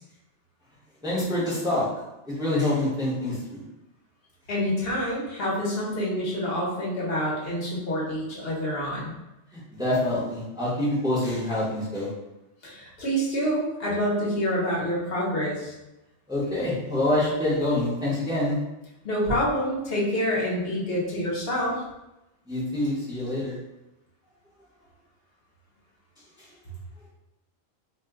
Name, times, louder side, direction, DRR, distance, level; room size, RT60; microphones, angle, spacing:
voice 1, 1.0-1.9 2.3-3.6 9.7-12.1 16.3-18.6 22.5-23.6, left 1 dB, 5° right, -8 dB, 0.7 m, -26 dB
voice 2, 4.5-9.1 12.6-15.7 19.0-21.8, equal, 55° left, -5 dB, 1.1 m, -27 dB
2.8 x 2.1 x 3.5 m, 0.95 s
omnidirectional pair, 1.3 m